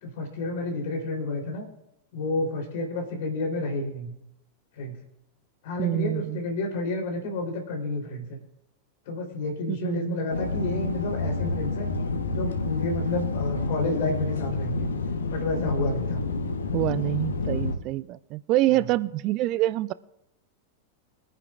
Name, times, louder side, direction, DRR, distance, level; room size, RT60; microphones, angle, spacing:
voice 1, 0.0-1.6 2.1-4.1 4.8-4.9 5.6-8.4 9.1-11.9 12.3-14.9 15.3-16.2, left 2 dB, 50° left, 1 dB, 3.6 m, -30 dB
voice 2, 5.8-6.4 9.7-10.2 16.7-19.9, right 15 dB, 40° right, 18 dB, 0.4 m, -26 dB
sound 1, 10.3-17.8, left 3 dB, 70° left, 1.1 m, -29 dB
23.5 x 9.7 x 2.5 m, 0.84 s
figure-of-eight pair, 90°, 0 cm